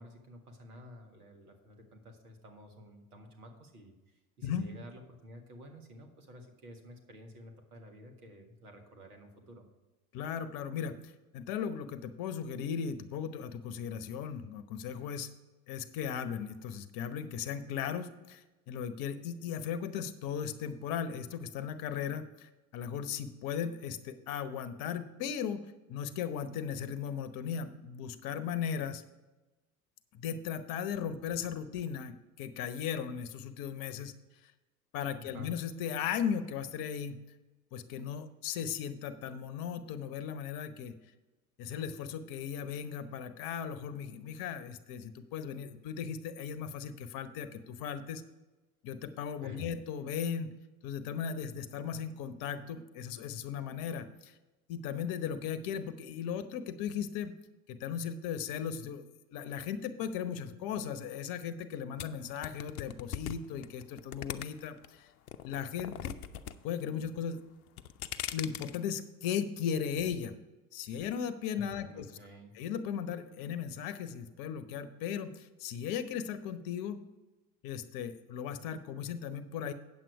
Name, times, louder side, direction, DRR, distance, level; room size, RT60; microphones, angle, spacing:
voice 1, 0.0-9.7 35.2-35.5 49.4-49.7 71.7-72.6, equal, 80° right, 4 dB, 1.6 m, -52 dB
voice 2, 10.1-15.3 15.7-25.6 25.9-29.0 30.1-34.1 34.9-37.2 37.7-40.9 41.6-48.2 48.8-50.5 50.8-54.3 54.7-57.3 57.7-59.0 59.3-65.1 65.4-66.1 66.6-67.4 68.3-70.4 70.7-72.1 72.5-77.0 77.6-79.7, left 8 dB, 50° left, 12 dB, 0.9 m, -37 dB
sound 1, 62.0-64.9 65.3-66.5 66.8-67.3 67.7-68.8, left 11 dB, 75° left, 0.6 m, -39 dB
9.0 x 7.6 x 4.8 m, 1.1 s
hypercardioid pair, 75°, 44 cm